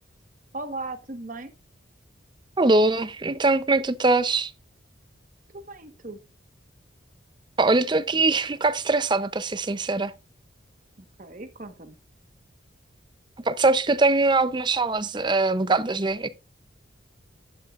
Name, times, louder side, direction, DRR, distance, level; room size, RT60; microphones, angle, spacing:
voice 1, 0.5-1.5 5.5-6.2 11.0-12.0, right 2 dB, 40° right, 1.2 m, -37 dB
voice 2, 2.6-4.5 7.6-10.1 13.5-16.3, right 3 dB, 25° right, 0.5 m, -22 dB
11.5 x 10.5 x 2.4 m
head